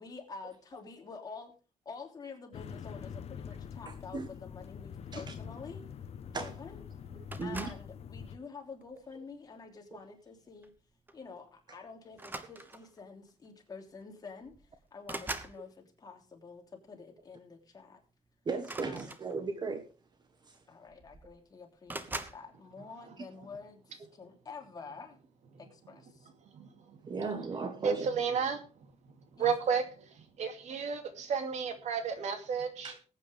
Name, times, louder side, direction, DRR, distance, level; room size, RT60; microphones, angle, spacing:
voice 1, 0.0-1.5 1.8-5.8 6.3-6.8 7.4-10.7 11.1-18.0 18.8-19.1 20.7-25.2 25.6-26.3 29.4-29.8, left 4 dB, 30° left, 3.2 m, -48 dB
sound 1, 2.5-8.4, left 7 dB, 60° left, 1.1 m, -45 dB
voice 2, 3.9-4.3 5.1-5.3 6.3-6.5 7.4-7.7 18.4-19.9 20.5-20.6 23.2-23.3 27.1-28.1 32.8-33.0, right 4 dB, 35° right, 1.3 m, -36 dB
sound 2, 7.3-7.9 8.8-9.1 10.6-10.8 11.1-11.3 12.1-13.0 14.0-14.1 14.4-15.6 18.6-19.7 20.6-20.7 20.9-21.4 21.9-22.4, right 2 dB, 15° right, 1.2 m, -42 dB
voice 3, 26.5-27.0 27.8-28.6 29.3-29.8 30.4-32.9, right 6 dB, 70° right, 2.6 m, -32 dB
20.0 x 8.9 x 3.5 m
wide cardioid pair, 155°, 12 cm